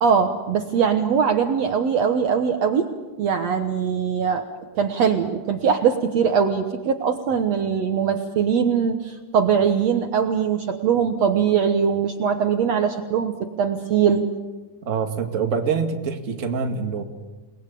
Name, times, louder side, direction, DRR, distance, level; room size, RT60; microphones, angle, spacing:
voice 1, 0.0-2.9 3.2-4.5 4.8-14.3, right 7 dB, 60° right, 6 dB, 2.1 m, -21 dB
voice 2, 14.9-17.0, right 6 dB, 30° right, 4 dB, 1.9 m, -25 dB
29.0 x 20.0 x 8.5 m, 1.2 s
omnidirectional pair, 3.8 m